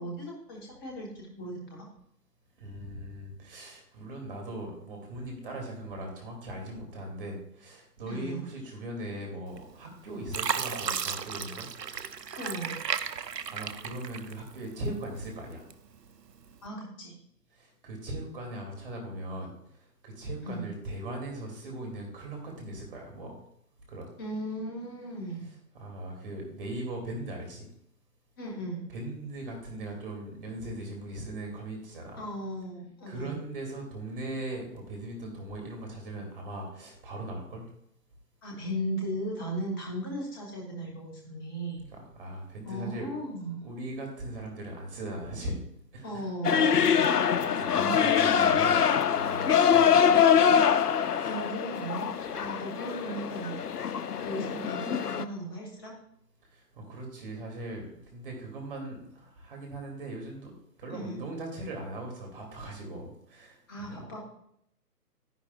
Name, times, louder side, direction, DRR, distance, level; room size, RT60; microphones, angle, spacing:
voice 1, 0.0-1.9 8.1-8.4 12.4-12.8 16.6-17.2 20.4-20.7 24.2-25.5 28.4-28.9 32.1-33.4 38.4-41.8 42.6-43.6 46.0-47.1 47.7-48.9 51.2-53.5 54.2-55.9 60.9-61.2 63.7-64.2, right 1 dB, 15° left, -1 dB, 1.1 m, -37 dB
voice 2, 2.6-11.7 13.2-15.7 17.6-19.5 20.0-23.4 23.9-24.1 25.7-27.7 28.9-32.3 33.1-37.7 41.9-45.6 45.9-46.2 47.6-48.9 49.1-50.2 51.1-51.3 56.5-60.5 60.8-64.0, right 1 dB, 35° right, 1 dB, 2.5 m, -39 dB
Fill (with liquid), 9.6-9.9 10.3-14.7 15.2-16.0 16.5-16.7, right 7 dB, 80° right, 0.7 m, -34 dB
sound 1, 46.4-55.2, left 7 dB, 70° left, 0.7 m, -24 dB
10.0 x 10.0 x 2.3 m, 0.73 s
figure-of-eight pair, 145°, 49 cm